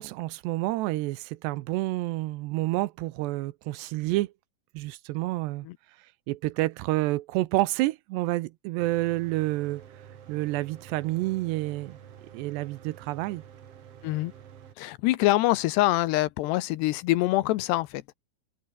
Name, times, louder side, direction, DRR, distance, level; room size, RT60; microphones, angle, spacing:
voice 1, 0.0-4.3 4.7-5.7 6.3-9.8 10.3-12.0 12.3-13.4, right 18 dB, 80° right, 2.7 m, -29 dB
Mechanical fan, 8.8-14.7, right 9 dB, 60° right, 1.7 m, -49 dB
voice 2, 14.8-18.2, left 17 dB, 75° left, 2.7 m, -25 dB
open air
omnidirectional pair, 5.4 m